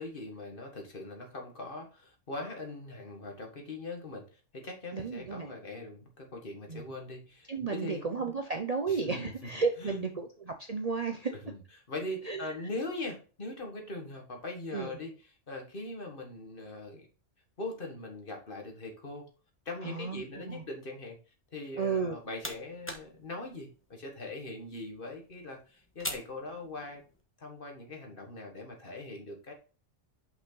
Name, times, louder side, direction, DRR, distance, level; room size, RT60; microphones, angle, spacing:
voice 1, 0.0-8.1 8.9-9.5 9.8-10.1 11.2-11.6 11.9-15.1 15.5-17.1 17.6-19.3 19.7-21.2 21.5-27.0 27.4-29.5, left 2 dB, 45° left, 2 dB, 1.8 m, -41 dB
voice 2, 4.9-5.5 6.7-6.9 7.5-11.4 12.2-12.5 14.7-14.9 19.8-20.6 21.8-22.1, right 5 dB, 40° right, 5 dB, 0.7 m, -33 dB
sound 1, 21.9-27.2, left 1 dB, 10° left, 1.1 m, -45 dB
6.0 x 5.5 x 3.9 m, 0.36 s
omnidirectional pair, 1.2 m